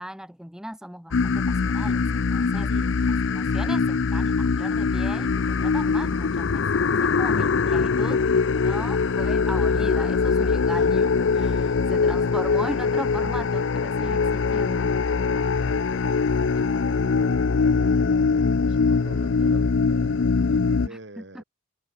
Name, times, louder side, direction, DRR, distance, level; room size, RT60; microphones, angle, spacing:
voice 1, 0.0-2.7 3.3-8.2 8.5-14.9 20.9-21.4, equal, 5° right, 1.7 m, -37 dB
sound 1, 1.1-20.9, left 4 dB, 85° left, 0.6 m, -22 dB
voice 2, 2.7-3.4 5.6-5.7 7.3-7.8 8.8-9.1 10.7-10.8 12.2-12.5 15.3-20.1 20.4-21.4, right 2 dB, 65° right, 3.8 m, -47 dB
open air
head